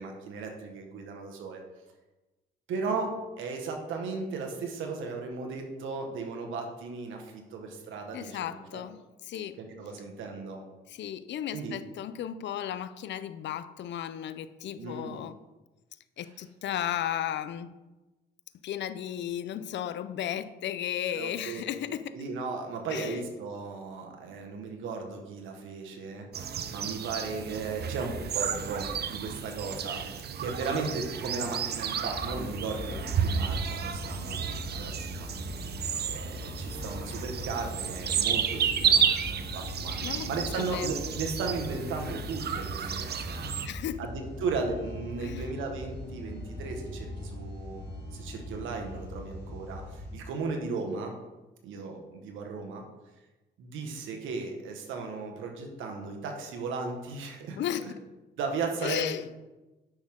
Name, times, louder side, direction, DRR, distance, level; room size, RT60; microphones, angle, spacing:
voice 1, 0.0-1.6 2.7-8.8 9.6-10.6 11.5-11.8 14.7-15.2 16.2-16.3 21.1-21.6 22.1-35.3 36.0-43.5 44.0-47.8 48.1-51.2 51.6-52.8 53.6-57.9 58.4-59.1, right 4 dB, 85° right, 1.6 m, -36 dB
voice 2, 8.1-9.0 9.3-9.6 10.9-15.4 16.2-17.7 18.6-22.1 22.9-23.2 40.0-40.3 40.5-40.9 43.6-44.1 45.2-45.4 57.6-58.0 58.8-59.2, left 10 dB, 65° left, 0.5 m, -34 dB
sound 1, 26.3-43.7, right 7 dB, 55° right, 0.7 m, -32 dB
sound 2, 32.1-50.2, left 1 dB, 45° left, 2.6 m, -40 dB
9.7 x 6.3 x 3.8 m
cardioid pair, 90°, 20 cm